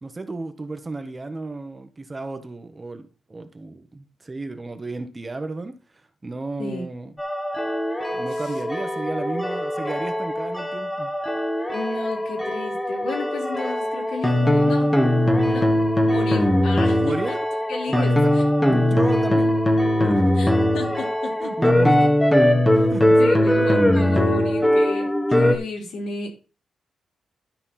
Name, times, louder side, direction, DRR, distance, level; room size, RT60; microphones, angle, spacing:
voice 1, 0.0-5.8 6.2-7.1 8.1-11.1 17.0-17.4 17.9-18.3 18.6-19.5 20.0-20.2 21.4-22.1 22.7-23.2, right 3 dB, 20° right, 8 dB, 1.1 m, -32 dB
sound 1, 7.2-25.6, left 1 dB, 10° left, 1.1 m, -20 dB
voice 2, 11.7-15.0 15.4-15.7 16.1-17.4 17.7-18.4 20.3-21.5 23.2-26.3, left 3 dB, 90° left, -1 dB, 4.1 m, -33 dB
12.0 x 4.4 x 5.7 m, 0.34 s
wide cardioid pair, 135°, 0 cm